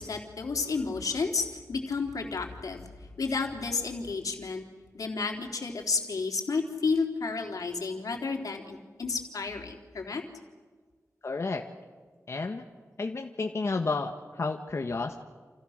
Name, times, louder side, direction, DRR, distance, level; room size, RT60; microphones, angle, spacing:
voice 1, 0.0-2.9 3.2-4.6 4.9-10.2, left 4 dB, 90° left, 2 dB, 3.5 m, -31 dB
voice 2, 11.2-11.6 12.3-12.6 13.0-15.1, left 3 dB, 50° left, 4 dB, 1.5 m, -31 dB
29.0 x 28.5 x 6.6 m, 1.5 s
wide cardioid pair, 115°, 6 cm